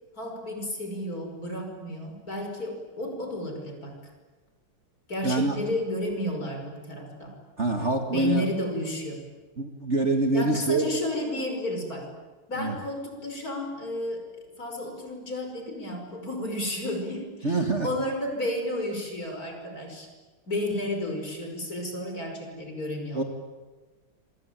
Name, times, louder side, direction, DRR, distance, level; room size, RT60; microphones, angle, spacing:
voice 1, 0.2-4.0 5.1-7.4 8.1-9.2 10.3-12.1 12.5-20.1 20.5-23.2, left 1 dB, 40° left, 3 dB, 5.9 m, -32 dB
voice 2, 5.2-5.6 7.6-8.4 9.6-10.9 12.6-12.8 17.4-17.9 23.1-23.2, right 2 dB, 35° right, 4 dB, 2.1 m, -25 dB
27.0 x 24.5 x 9.0 m, 1.3 s
omnidirectional pair, 2.3 m